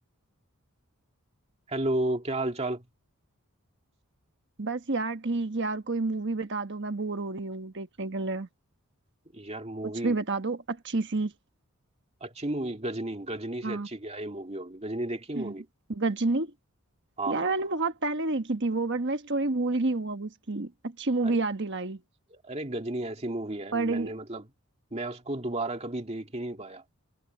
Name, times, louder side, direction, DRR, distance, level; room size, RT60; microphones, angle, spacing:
voice 1, 1.7-2.8 9.3-10.2 12.2-15.7 17.2-17.5 21.2-21.4 22.3-24.5 24.9-26.8, right 1 dB, 30° right, 2.3 m, -33 dB
voice 2, 4.6-8.5 9.8-11.3 13.6-13.9 15.3-15.5 15.9-16.5 17.3-22.0 23.7-24.1, right 3 dB, 50° right, 1.3 m, -29 dB
head